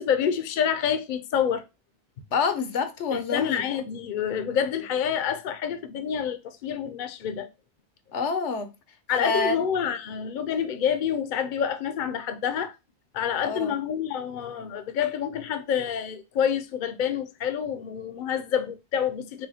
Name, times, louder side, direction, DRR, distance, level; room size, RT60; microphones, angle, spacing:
voice 1, 0.0-1.6 3.1-7.5 9.1-12.7 13.1-19.5, left 8 dB, 55° left, 0.7 m, -28 dB
voice 2, 2.3-3.6 8.1-8.7 9.2-9.6 13.4-13.8, left 4 dB, 85° left, 1.1 m, -27 dB
5.7 x 2.2 x 4.1 m
omnidirectional pair, 1.2 m